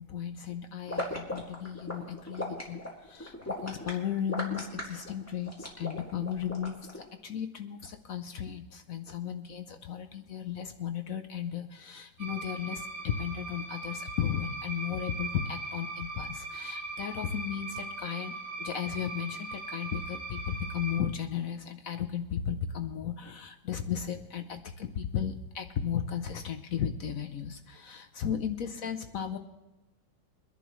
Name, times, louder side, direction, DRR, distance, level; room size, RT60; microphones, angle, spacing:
voice 1, 0.0-29.4, left 8 dB, 60° left, 7 dB, 1.0 m, -35 dB
sound 1, 0.9-7.0, left 1 dB, 10° left, 2.0 m, -37 dB
sound 2, 12.2-21.0, right 2 dB, 65° right, 2.7 m, -39 dB
23.5 x 11.0 x 3.1 m, 1.0 s
omnidirectional pair, 2.0 m